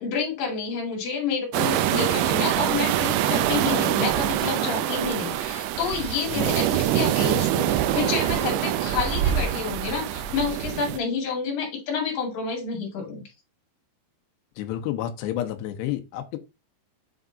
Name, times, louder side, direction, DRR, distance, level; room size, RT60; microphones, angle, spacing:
voice 1, 0.0-13.2, left 5 dB, 55° left, 3.5 m, -29 dB
sound 1, 1.5-11.0, right 12 dB, 85° right, 2.3 m, -24 dB
voice 2, 14.6-16.4, left 12 dB, 80° left, 2.8 m, -30 dB
7.5 x 3.6 x 3.8 m
omnidirectional pair, 5.0 m